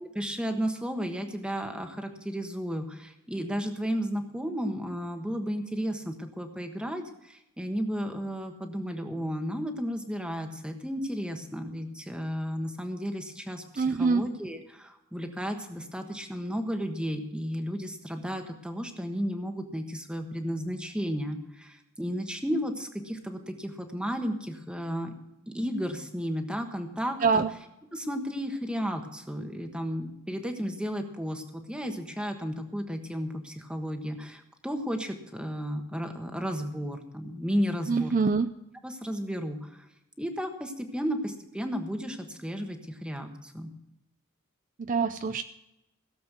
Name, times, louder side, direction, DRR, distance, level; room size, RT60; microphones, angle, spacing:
voice 1, 0.0-25.1 25.5-27.4 27.9-38.1 38.8-39.9 40.2-43.7, equal, 5° right, 5 dB, 1.4 m, -33 dB
voice 2, 13.8-14.3 27.2-27.5 37.9-38.5 44.8-45.4, right 4 dB, 40° right, 11 dB, 0.4 m, -25 dB
17.0 x 7.4 x 6.2 m, 0.88 s
head